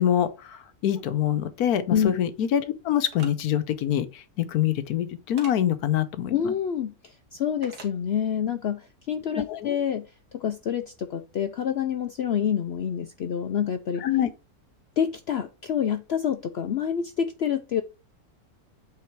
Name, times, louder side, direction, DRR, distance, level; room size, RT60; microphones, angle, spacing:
voice 1, 0.0-6.5 9.5-9.8 14.0-14.3, left 10 dB, 80° left, 1.3 m, -25 dB
phone pickup hangup, 3.1-3.3 5.4-5.5 7.6-7.9, right 3 dB, 85° right, 1.9 m, -42 dB
voice 2, 6.3-10.1 10.3-14.0 15.0-17.8, left 8 dB, 65° left, 0.6 m, -27 dB
8.4 x 3.8 x 4.6 m
omnidirectional pair, 1.6 m